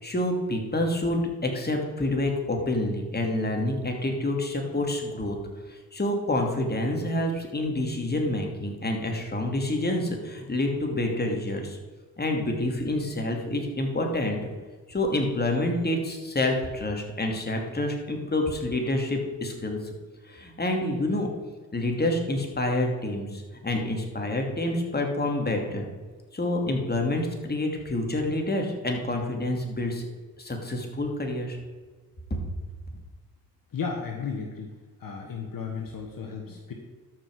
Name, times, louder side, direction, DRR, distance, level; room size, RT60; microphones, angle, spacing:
voice 1, 0.0-5.4 5.7-11.8 12.2-14.4 14.9-19.8 20.3-21.3 21.7-25.9 26.3-30.1 30.4-31.6 32.3-32.4, left 1 dB, 25° left, 2 dB, 2.6 m, -28 dB
voice 2, 33.7-34.7 35.0-36.7, left 5 dB, 60° left, 2 dB, 1.5 m, -34 dB
13.0 x 6.1 x 4.8 m, 1.4 s
supercardioid pair, 60°, 38 cm